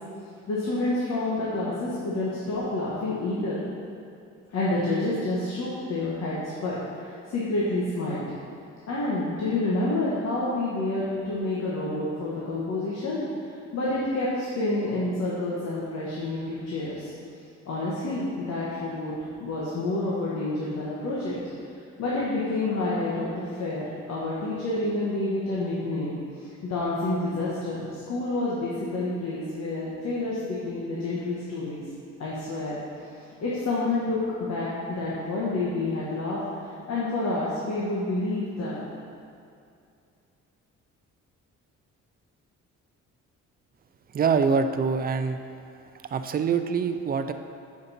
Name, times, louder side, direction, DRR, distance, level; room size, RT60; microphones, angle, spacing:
voice 1, 0.5-3.6 4.5-8.2 8.9-13.2 13.7-17.1 17.6-19.1 19.4-21.3 22.0-31.8 32.2-33.0 33.4-36.4 36.9-38.8, left 2 dB, 60° left, -7 dB, 1.3 m, -28 dB
voice 2, 44.1-45.4 46.1-47.3, right 5 dB, 30° right, 8 dB, 0.4 m, -24 dB
7.0 x 5.2 x 4.1 m, 2.5 s
cardioid pair, 90°, 30 cm